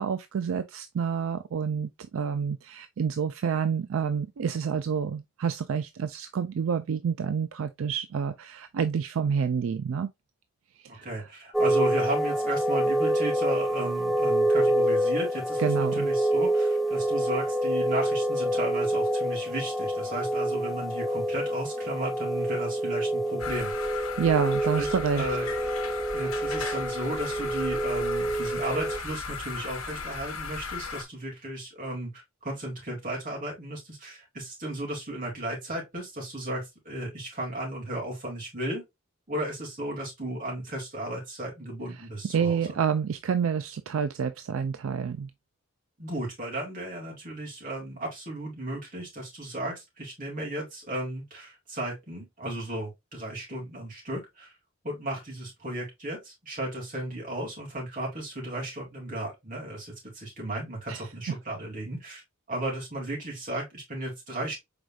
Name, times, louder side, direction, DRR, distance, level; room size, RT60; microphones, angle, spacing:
voice 1, 0.0-10.1 10.9-11.0 15.6-16.1 24.2-25.3 42.3-45.3 60.9-61.0, right 6 dB, 70° right, 0.4 m, -28 dB
voice 2, 10.9-24.0 24.8-25.5 26.1-38.8 39.3-42.5 46.0-54.5 54.8-62.2 62.5-64.6, right 1 dB, 40° right, 2.8 m, -35 dB
sound 1, 11.5-29.0, right 1 dB, ahead, 0.4 m, -27 dB
sound 2, 23.4-31.0, left 5 dB, 75° left, 1.0 m, -36 dB
5.0 x 4.1 x 2.3 m
head